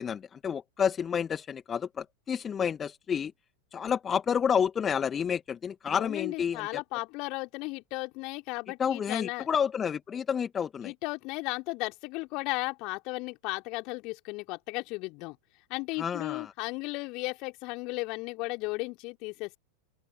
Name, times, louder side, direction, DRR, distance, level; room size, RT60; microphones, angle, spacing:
voice 1, 0.0-3.3 3.7-6.8 8.8-10.9 16.0-16.5, left 7 dB, 20° left, 1.8 m, -30 dB
voice 2, 5.9-9.5 10.8-15.4 15.7-19.6, left 25 dB, 40° left, 3.4 m, -35 dB
open air
figure-of-eight pair, 90°, 0 cm